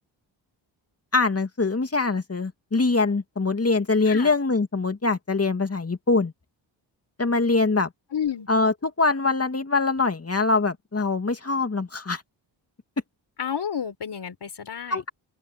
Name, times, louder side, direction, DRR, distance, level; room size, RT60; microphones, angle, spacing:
voice 1, 1.1-6.3 7.2-7.9 8.5-12.2 14.9-15.1, left 3 dB, 30° left, 2.5 m, -23 dB
voice 2, 8.1-8.5 13.4-15.1, left 8 dB, 55° left, 4.5 m, -30 dB
open air
supercardioid pair, 50°, 47 cm